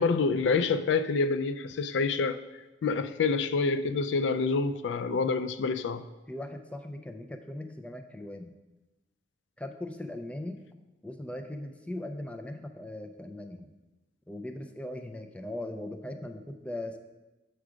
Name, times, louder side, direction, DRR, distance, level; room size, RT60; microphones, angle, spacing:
voice 1, 0.0-2.4 2.8-6.1, left 4 dB, 90° left, 0.4 m, -27 dB
voice 2, 6.3-8.5 9.6-10.6 11.0-13.7 14.3-17.0, left 1 dB, 5° left, 0.4 m, -39 dB
6.2 x 4.7 x 4.9 m
head